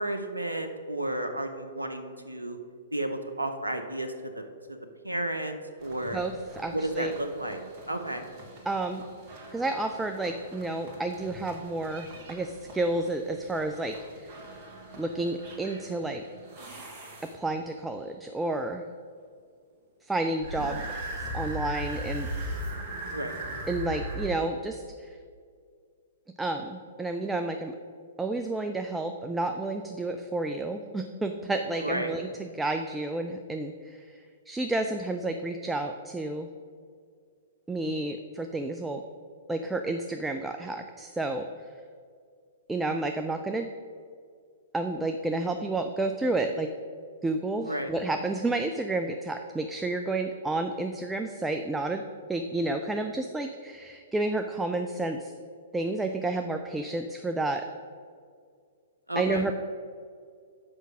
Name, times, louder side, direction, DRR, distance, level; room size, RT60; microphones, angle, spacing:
voice 1, 0.0-2.6 2.9-4.8 5.0-6.2 6.7-7.6 7.9-8.2 23.1-23.3 31.8-32.1 47.7-47.9 59.1-59.4, right 1 dB, 85° right, 7 dB, 0.6 m, -32 dB
sound 1, 5.8-17.7 20.4-24.3, right 1 dB, 35° right, 1.5 m, -40 dB
voice 2, 6.1-7.1 8.7-9.0 9.5-14.0 14.2-14.3 15.0-16.2 17.3-18.8 20.1-20.8 21.3-22.3 23.7-25.2 26.4-27.7 28.2-36.5 37.7-39.0 39.5-41.5 42.7-43.7 44.7-46.7 47.2-52.0 52.3-55.3 55.7-57.6 59.2-59.5, right 2 dB, 5° right, 5 dB, 0.3 m, -30 dB
6.3 x 5.2 x 6.0 m, 2.1 s
figure-of-eight pair, 115°, 0 cm